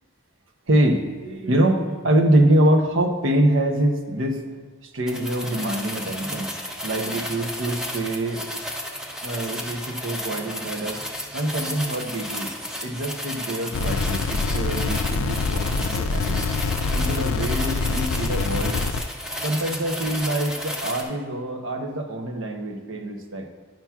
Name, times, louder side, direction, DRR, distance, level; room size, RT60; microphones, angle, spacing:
voice 1, 0.7-4.5 4.8-8.4 9.2-11.0 11.3-12.5 12.8-16.4 16.9-18.8 19.4-23.5, right 1 dB, 70° right, 3 dB, 0.7 m, -24 dB
sound 1, 5.1-21.0, equal, 5° right, 0.5 m, -33 dB
sound 2, 13.7-19.0, left 4 dB, 85° left, 0.3 m, -25 dB
10.5 x 5.7 x 2.3 m, 1.4 s
head